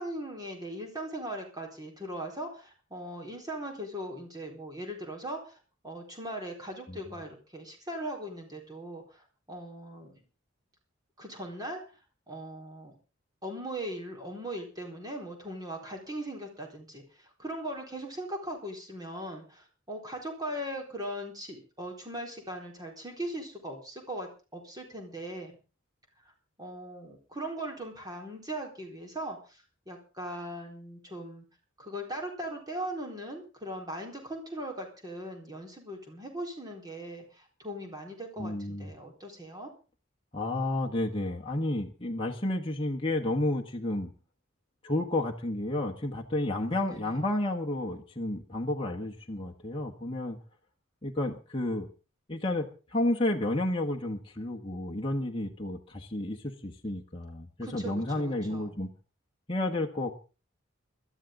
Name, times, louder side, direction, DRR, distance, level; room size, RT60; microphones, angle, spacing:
voice 1, 0.0-5.6 5.8-10.2 11.2-11.8 12.3-12.9 13.4-25.6 26.6-31.4 31.8-39.7 46.7-47.2 57.6-58.8, right 1 dB, 20° right, 1 dB, 4.0 m, -39 dB
voice 2, 38.4-38.9 40.3-44.1 44.8-50.4 51.0-51.9 52.3-58.9 59.5-60.1, left 1 dB, 25° left, 1 dB, 1.4 m, -31 dB
21.0 x 13.0 x 3.8 m, 0.33 s
head